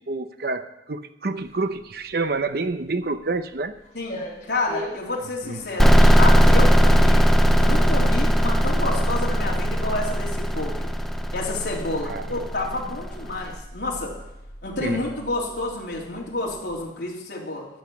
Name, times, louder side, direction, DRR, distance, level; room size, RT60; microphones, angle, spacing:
voice 1, 0.1-3.7 5.4-5.6 12.1-12.3 14.8-15.0, right 3 dB, 55° right, 10 dB, 0.7 m, -28 dB
sound 1, 1.4-16.9, equal, 40° left, 5.8 m, -42 dB
voice 2, 4.5-7.2 7.6-10.7 11.3-14.1 14.6-17.7, left 2 dB, 75° left, -3 dB, 3.0 m, -29 dB
sound 2, 5.8-13.3, equal, ahead, 0.6 m, -18 dB
14.0 x 6.3 x 9.8 m, 0.90 s
head